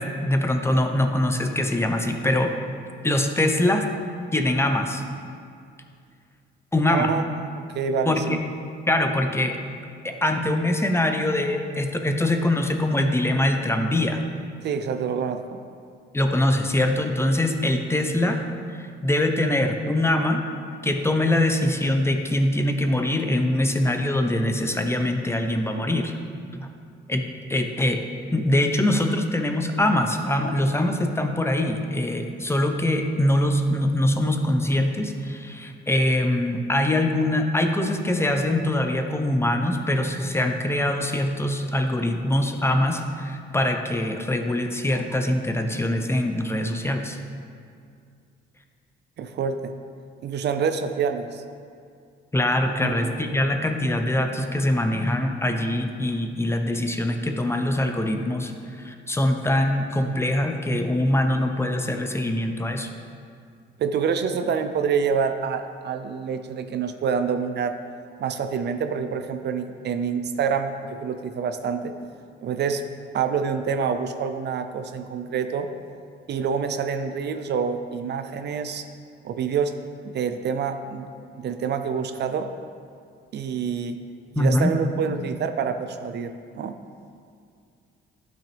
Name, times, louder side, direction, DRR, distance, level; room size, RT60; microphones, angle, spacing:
voice 1, 0.0-2.5 3.0-3.9 4.3-5.0 6.7-7.1 8.1-8.4 8.9-9.6 10.0-14.2 16.1-18.5 18.7-20.4 20.8-26.2 26.5-26.7 27.1-27.2 27.5-28.0 28.3-47.2 52.3-58.5 58.8-62.9 84.4-84.7, left 1 dB, 10° left, 5 dB, 0.7 m, -23 dB
voice 2, 6.9-7.2 7.6-8.4 14.6-15.6 49.2-49.7 50.2-51.4 52.8-53.2 63.8-67.7 68.2-71.9 72.4-72.8 73.1-75.7 76.3-78.8 79.2-79.7 80.1-81.1 81.4-82.5 83.3-84.0 84.3-86.8, right 6 dB, 60° right, 8 dB, 0.5 m, -27 dB
11.0 x 6.1 x 3.4 m, 2.3 s
cardioid pair, 90°, 20 cm